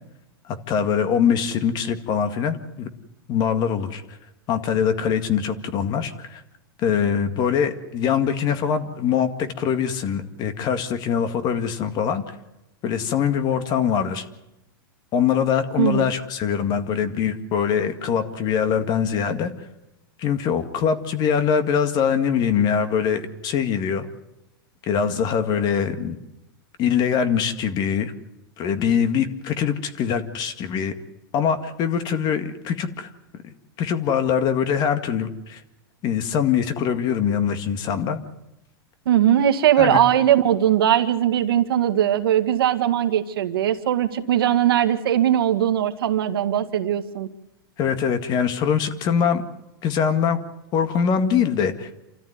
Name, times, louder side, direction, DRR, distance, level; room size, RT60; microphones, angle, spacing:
voice 1, 0.7-2.9 3.3-4.0 4.5-6.4 6.8-12.4 12.8-14.3 15.1-19.5 20.2-24.1 24.8-26.2 26.8-28.1 28.6-30.9 31.3-33.1 33.4-35.6 36.0-38.2 39.8-40.0 47.8-49.4 49.8-50.4 50.7-51.9, left 7 dB, 35° left, 9 dB, 2.0 m, -23 dB
voice 2, 39.1-47.3, right 11 dB, 75° right, 7 dB, 2.0 m, -20 dB
28.0 x 14.0 x 9.5 m, 0.93 s
hypercardioid pair, 135°, 12 cm